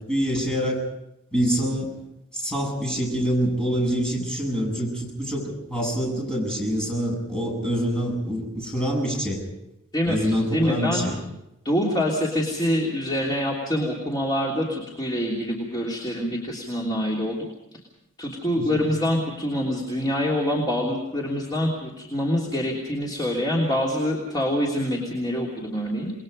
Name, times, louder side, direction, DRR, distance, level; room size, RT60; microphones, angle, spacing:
voice 1, 0.1-0.9 1.3-1.9 2.3-9.4 10.0-11.1 18.5-18.8, equal, 5° left, -2 dB, 8.0 m, -25 dB
voice 2, 9.9-11.1 11.6-17.4 18.2-26.1, equal, 20° left, -3 dB, 3.2 m, -25 dB
28.5 x 21.0 x 5.4 m, 0.89 s
head